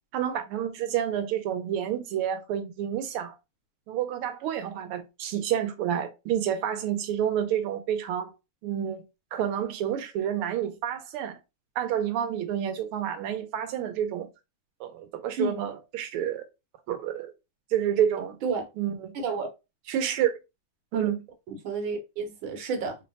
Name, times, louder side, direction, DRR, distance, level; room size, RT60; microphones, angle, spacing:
voice 1, 0.1-3.3 3.9-8.3 8.6-9.0 9.3-11.4 11.8-14.3 14.8-16.4 16.9-17.3 17.7-18.4 18.8-19.1 19.9-20.3 20.9-21.2, right 10 dB, 90° right, 1.6 m, -29 dB
voice 2, 19.1-19.5 20.9-21.1 21.5-23.0, right 4 dB, 70° right, 1.6 m, -30 dB
3.7 x 2.1 x 4.0 m
omnidirectional pair, 2.4 m